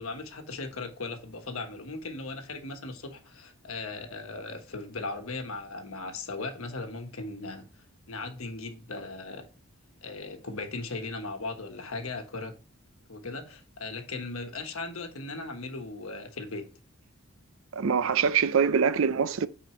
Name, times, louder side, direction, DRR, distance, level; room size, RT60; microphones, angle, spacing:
voice 1, 0.0-7.7 8.1-9.5 10.0-12.6 13.1-16.7, left 3 dB, 85° left, 1.3 m, -38 dB
voice 2, 17.8-19.5, right 6 dB, 70° right, 0.5 m, -24 dB
8.9 x 4.4 x 3.1 m
head